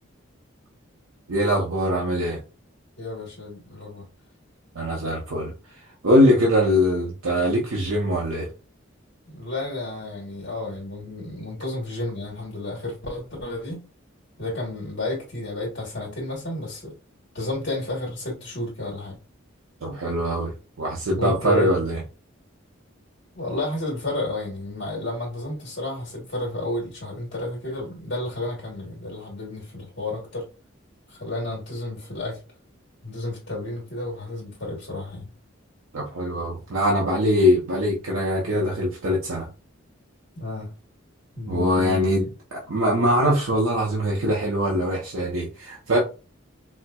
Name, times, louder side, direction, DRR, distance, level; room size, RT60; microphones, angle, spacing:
voice 1, 1.3-2.4 4.7-5.5 6.0-8.5 19.8-22.0 35.9-39.5 41.5-42.3 42.5-46.0, equal, 90° right, 0.7 m, -22 dB
voice 2, 3.0-4.0 9.3-13.8 14.4-16.9 17.3-19.2 21.1-21.7 23.3-30.4 31.1-32.4 33.0-35.3 40.3-40.7 41.3-42.3, left 2 dB, 60° left, 1.1 m, -31 dB
4.3 x 2.1 x 2.3 m
head